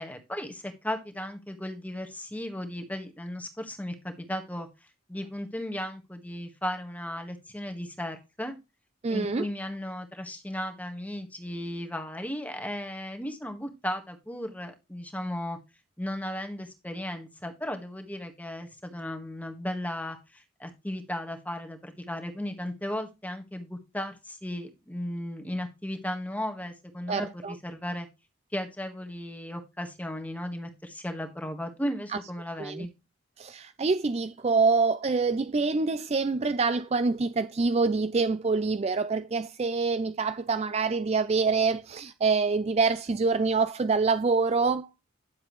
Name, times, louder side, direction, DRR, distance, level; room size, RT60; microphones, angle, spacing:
voice 1, 0.0-4.7 5.1-8.5 9.1-15.6 16.0-28.1 28.5-32.9, left 1 dB, 5° left, 1.5 m, -35 dB
voice 2, 9.0-9.5 27.1-27.5 32.1-32.2 32.6-32.9 33.4-44.9, right 4 dB, 30° right, 0.4 m, -26 dB
10.5 x 7.4 x 3.1 m
head